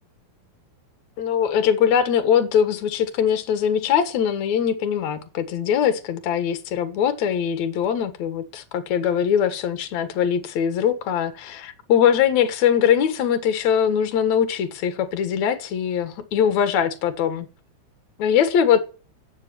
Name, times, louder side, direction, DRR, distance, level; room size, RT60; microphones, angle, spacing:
voice 1, 1.2-17.5 18.2-18.8, left 8 dB, 75° left, 1.7 m, -21 dB
15.5 x 7.8 x 7.0 m
omnidirectional pair, 5.9 m